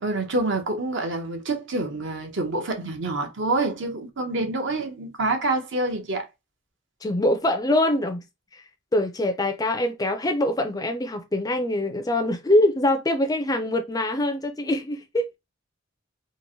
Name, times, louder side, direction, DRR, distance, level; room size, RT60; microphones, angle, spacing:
voice 1, 0.0-6.3, right 2 dB, 55° right, 0.7 m, -27 dB
voice 2, 7.0-8.2 8.5-8.6 8.9-15.3, left 1 dB, 15° left, 0.4 m, -24 dB
3.0 x 2.5 x 2.6 m
head